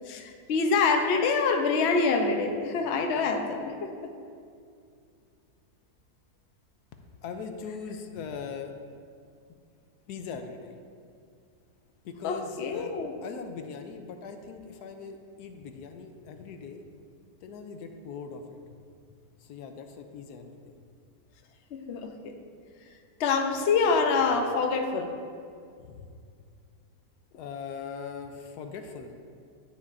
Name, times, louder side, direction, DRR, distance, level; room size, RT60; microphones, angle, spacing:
voice 1, 0.1-4.1 12.2-13.1 21.7-22.3 23.2-25.1, left 4 dB, 60° left, 4 dB, 0.7 m, -26 dB
voice 2, 7.2-8.7 10.1-10.7 12.0-12.9 13.2-16.8 17.4-18.6 19.4-20.7 25.8-26.1 27.3-29.1, left 5 dB, 80° left, 6 dB, 1.1 m, -40 dB
11.0 x 7.1 x 2.5 m, 2.3 s
omnidirectional pair, 1.7 m